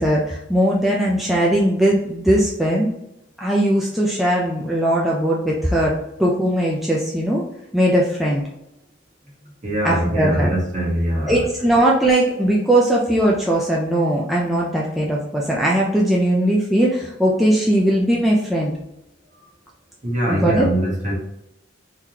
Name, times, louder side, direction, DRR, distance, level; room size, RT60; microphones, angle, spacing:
voice 1, 0.0-2.9 3.4-5.9 6.2-7.4 7.7-8.4 9.8-10.5 11.3-18.7 20.3-20.7, right 1 dB, ahead, -5 dB, 0.4 m, -19 dB
voice 2, 9.6-11.4 20.0-21.1, right 1 dB, 40° right, -3 dB, 1.3 m, -22 dB
3.8 x 3.1 x 2.8 m, 0.85 s
head